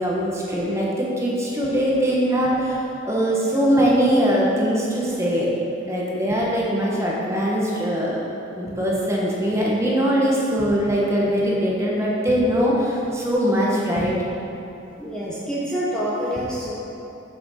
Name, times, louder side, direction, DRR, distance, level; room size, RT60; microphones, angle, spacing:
voice 1, 0.0-5.5 5.8-8.2 8.5-14.1, equal, 15° right, -4 dB, 1.2 m, -21 dB
voice 2, 15.0-16.7, equal, 5° left, -8 dB, 1.1 m, -27 dB
7.7 x 6.0 x 5.7 m, 3.0 s
head